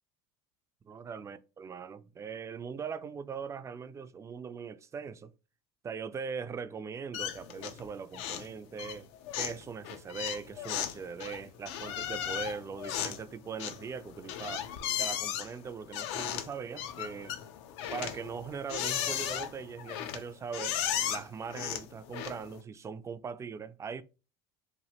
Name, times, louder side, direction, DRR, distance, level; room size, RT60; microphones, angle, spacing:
voice 1, 0.9-5.3 5.8-9.1 9.3-14.7 15.0-17.4 17.9-20.8 21.1-24.0, right 6 dB, 20° right, 0.3 m, -40 dB
sound 1, 7.1-7.9 8.1-8.5 8.8-22.6, left 10 dB, 75° left, 0.5 m, -36 dB
3.1 x 2.3 x 2.8 m
supercardioid pair, 100°, 14 cm